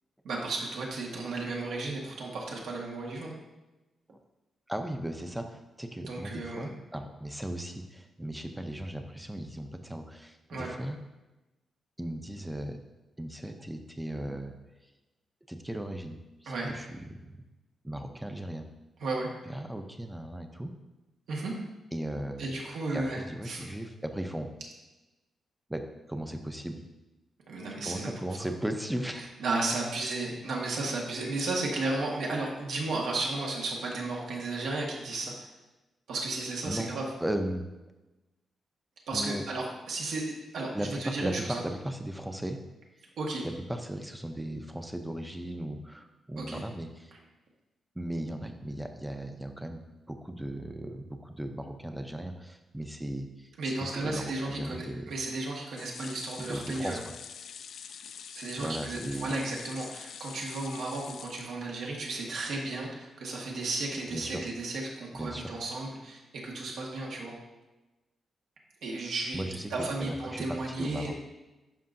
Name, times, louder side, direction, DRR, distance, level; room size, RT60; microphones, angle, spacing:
voice 1, 0.2-3.3 6.0-6.7 10.5-10.7 16.5-16.7 19.0-19.3 21.3-21.5 22.4-23.7 27.5-28.1 29.4-35.5 36.1-37.0 39.1-41.6 43.2-43.4 46.4-46.6 53.6-57.0 58.3-67.3 68.8-69.4 69.7-71.1, right 2 dB, 80° right, -2 dB, 1.5 m, -34 dB
voice 2, 4.7-11.0 12.0-12.8 13.2-14.6 15.5-17.4 17.8-18.7 19.5-20.7 21.9-22.6 22.9-24.5 25.7-25.8 26.1-26.8 27.8-29.3 36.6-37.7 39.1-39.4 40.7-42.6 43.4-47.1 48.0-55.1 56.4-57.0 58.6-59.3 64.1-64.4 65.1-65.5 69.3-71.1, right 1 dB, 5° right, 6 dB, 0.5 m, -37 dB
sound 1, 55.7-62.1 62.5-62.6 62.9-63.0, left 7 dB, 60° left, 0.3 m, -45 dB
11.0 x 5.5 x 2.6 m, 1.1 s
wide cardioid pair, 180°, 0 cm